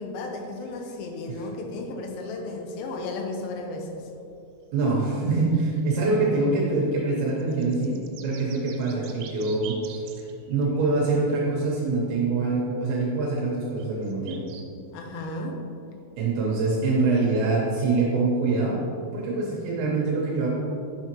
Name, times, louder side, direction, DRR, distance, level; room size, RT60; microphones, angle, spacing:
voice 1, 0.0-4.1 14.9-15.6, left 2 dB, 80° left, 3 dB, 3.2 m, -34 dB
sound 1, 0.6-0.9 1.9-2.0 4.2-4.3 4.5-4.6 4.8-10.8 12.4-12.5 13.8-14.7 15.3-15.4, right 8 dB, 90° right, 3.5 m, -47 dB
voice 2, 4.7-8.0 8.2-9.8 10.5-14.4 16.2-18.8 19.1-20.5, right 3 dB, 75° right, -3 dB, 2.8 m, -24 dB
9.0 x 7.0 x 3.0 m, 2.6 s
omnidirectional pair, 6.0 m